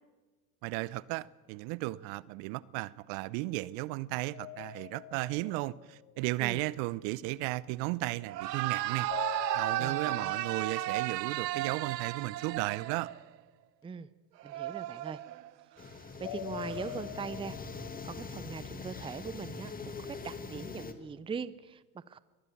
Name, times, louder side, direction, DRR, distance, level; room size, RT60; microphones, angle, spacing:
voice 1, 0.6-9.1 9.5-13.1, right 20 dB, 55° right, 0.8 m, -35 dB
sound 1, 4.3-6.4 9.1-12.0 16.2-18.4, left 14 dB, 45° left, 1.3 m, -44 dB
sound 2, 8.2-13.4 14.4-15.6 16.6-17.0, right 15 dB, 85° right, 0.6 m, -35 dB
voice 2, 9.8-10.3 13.8-14.1 14.4-15.2 16.2-17.6 18.0-22.2, right 6 dB, 10° right, 0.7 m, -41 dB
sound 3, 15.8-20.9, left 4 dB, 15° left, 1.9 m, -43 dB
23.0 x 19.0 x 7.2 m
hypercardioid pair, 85°, 48 cm